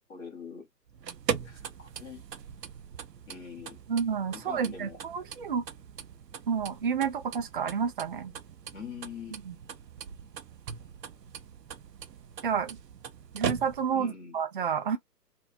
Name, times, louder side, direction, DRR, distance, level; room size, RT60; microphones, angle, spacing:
voice 1, 0.1-0.7 1.4-2.2 3.3-3.8 4.3-5.0 8.7-9.4 13.9-14.4, left 6 dB, 10° left, 0.7 m, -43 dB
sound 1, 0.9-14.1, right 7 dB, 75° right, 0.8 m, -40 dB
voice 2, 3.9-5.6 6.5-8.3 9.4-9.6 12.4-12.8 13.3-15.0, right 7 dB, 35° right, 0.4 m, -30 dB
2.9 x 2.1 x 3.9 m
figure-of-eight pair, 140°, 50 cm